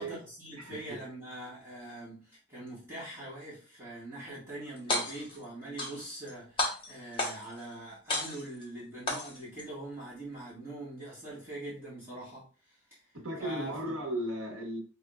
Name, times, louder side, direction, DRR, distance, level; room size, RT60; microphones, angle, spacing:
voice 1, 0.0-12.8 13.4-14.0, right 1 dB, 10° right, -10 dB, 1.7 m, -43 dB
voice 2, 0.6-1.0 13.1-14.8, right 1 dB, 75° right, 2 dB, 1.1 m, -36 dB
sound 1, 4.8-5.4 5.8-6.3 6.6-7.6 8.1-8.6 9.1-9.6, left 2 dB, 25° left, 0.9 m, -32 dB
4.8 x 3.5 x 2.4 m, 0.39 s
head